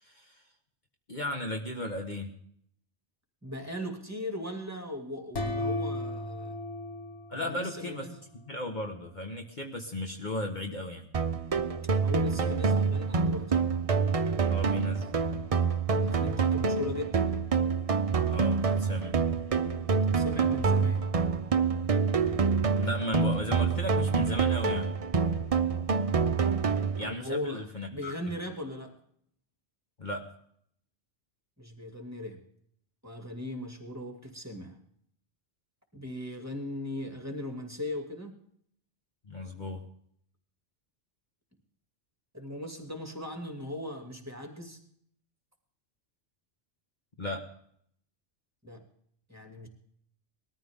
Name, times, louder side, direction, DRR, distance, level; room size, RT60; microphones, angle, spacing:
voice 1, 0.0-0.4 1.1-2.3 7.3-8.0 8.5-11.1 14.5-15.1 18.3-19.2 22.8-24.9 27.0-28.1 30.0-30.3 39.3-39.8 47.2-47.5, left 1 dB, 40° left, 2 dB, 1.5 m, -35 dB
voice 2, 3.4-6.6 7.3-8.2 12.0-13.7 15.9-17.4 19.9-21.1 27.0-28.9 31.6-32.4 33.0-34.8 35.9-38.3 42.3-44.8 48.6-48.8 49.3-49.7, left 1 dB, 15° right, 3 dB, 2.5 m, -38 dB
sound 1, 5.3-8.1, left 2 dB, 85° left, 2.1 m, -35 dB
sound 2, 11.1-27.1, right 5 dB, 35° right, 0.7 m, -27 dB
20.5 x 14.0 x 3.7 m, 0.66 s
omnidirectional pair, 1.1 m